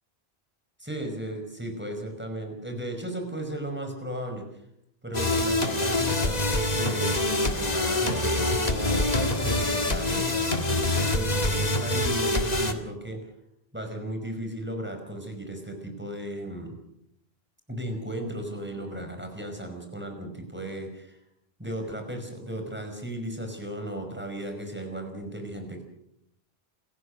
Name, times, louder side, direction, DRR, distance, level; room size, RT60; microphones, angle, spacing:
voice 1, 0.8-4.5 5.0-13.3 13.7-16.8 17.7-21.2 21.6-25.8, right 1 dB, 10° right, 4 dB, 5.2 m, -35 dB
sound 1, 5.1-12.7, left 2 dB, 40° left, 1.9 m, -25 dB
28.5 x 15.5 x 6.6 m, 0.76 s
omnidirectional pair, 1.1 m